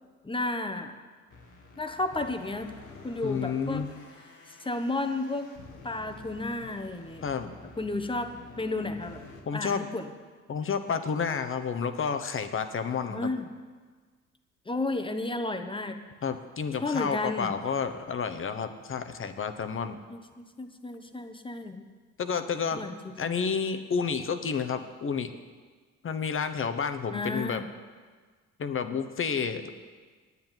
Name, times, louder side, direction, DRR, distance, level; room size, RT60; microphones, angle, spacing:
voice 1, 0.2-0.9 1.8-2.7 3.0-3.9 4.6-5.5 5.8-7.2 7.8-9.2 9.5-10.1 13.1-13.4 14.7-16.0 16.8-17.5 20.1-21.9 22.7-23.3 27.1-27.7, left 2 dB, 15° left, 7 dB, 1.0 m, -32 dB
sound 1, 1.3-9.4, left 3 dB, 80° left, 1.7 m, -49 dB
voice 2, 3.2-3.9 7.2-7.5 9.5-9.9 10.5-13.3 16.2-20.0 22.2-22.9 23.2-25.3 26.0-27.6 28.6-29.7, left 6 dB, 45° left, 9 dB, 1.0 m, -30 dB
9.4 x 8.3 x 9.0 m, 1.5 s
cardioid pair, 90°, 30 cm